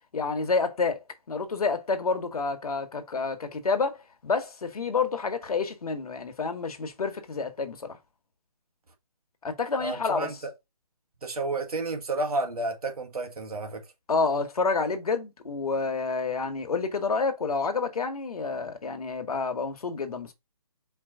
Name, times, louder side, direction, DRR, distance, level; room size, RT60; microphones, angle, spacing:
voice 1, 0.1-1.0 1.3-8.0 9.4-10.3 14.1-20.3, left 4 dB, 75° left, 1.2 m, -29 dB
voice 2, 9.8-10.3 11.2-13.8, right 2 dB, 80° right, 1.5 m, -31 dB
4.6 x 2.9 x 3.7 m
hypercardioid pair, 165°, 19 cm